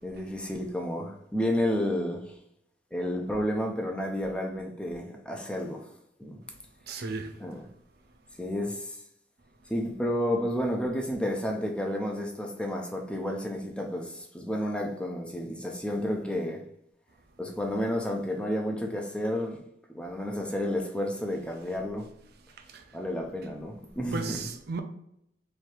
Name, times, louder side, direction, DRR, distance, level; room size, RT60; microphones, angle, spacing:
voice 1, 0.0-2.4 2.9-5.9 6.2-6.4 6.9-7.1 7.4-7.7 8.4-9.0 9.7-16.6 17.4-19.6 19.9-22.1 22.9-24.4, equal, 5° left, 0.5 m, -31 dB
voice 2, 6.9-7.3 22.7-22.8 24.1-24.8, right 4 dB, 60° right, 0.5 m, -34 dB
3.2 x 2.7 x 4.3 m
head